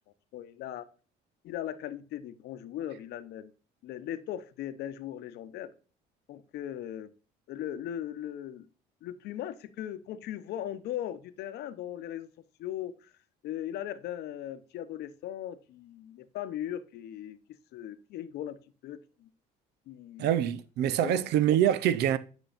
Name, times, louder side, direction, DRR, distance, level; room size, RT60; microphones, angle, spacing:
voice 1, 0.3-0.9 1.4-3.5 3.8-5.7 6.3-7.1 7.5-8.7 9.0-12.3 12.6-13.1 13.4-17.4 17.7-18.6 18.8-19.3 19.9-20.3 21.0-21.3, left 11 dB, 75° left, 0.8 m, -38 dB
voice 2, 20.2-22.2, right 10 dB, 80° right, 0.6 m, -25 dB
9.0 x 6.1 x 2.5 m
cardioid pair, 110°, 17 cm